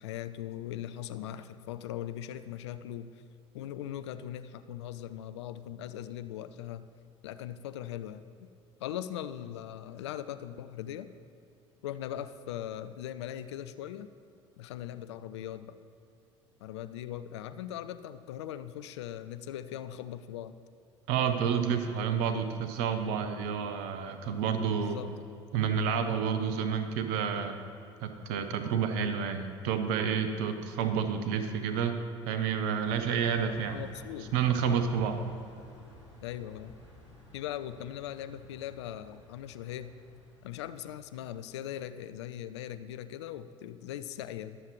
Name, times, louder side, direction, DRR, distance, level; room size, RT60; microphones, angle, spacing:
voice 1, 0.0-3.1 3.5-6.8 7.2-8.3 8.8-11.1 11.8-14.1 14.6-15.8 16.6-20.6 24.7-25.4 33.7-34.3 36.2-36.7 37.3-39.9 40.4-44.6, left 11 dB, 70° left, 11 dB, 0.5 m, -40 dB
voice 2, 21.1-25.0 25.5-27.6 28.0-32.0 32.3-33.8 34.3-35.2, right 7 dB, 60° right, 8 dB, 1.0 m, -29 dB
sound 1, 32.8-41.5, left 1 dB, 90° right, 1.4 m, -55 dB
22.0 x 7.4 x 3.2 m, 2.8 s
figure-of-eight pair, 65°, 15 cm